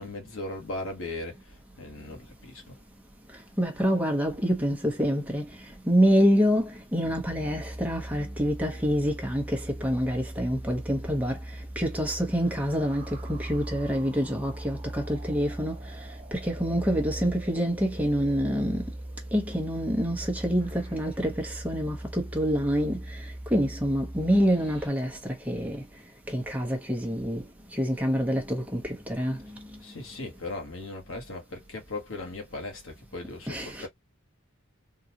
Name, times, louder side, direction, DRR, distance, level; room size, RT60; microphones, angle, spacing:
voice 1, 0.0-2.8 29.8-33.9, left 2 dB, 70° left, 1.3 m, -38 dB
voice 2, 3.6-5.4 5.9-11.4 11.8-15.7 16.3-18.8 19.3-23.0 23.5-25.1 25.5-25.8 26.3-27.4 27.7-29.4 33.5-33.9, equal, 5° right, 0.9 m, -26 dB
sound 1, 7.0-24.9, right 1 dB, 25° right, 1.3 m, -40 dB
3.8 x 2.4 x 2.9 m
head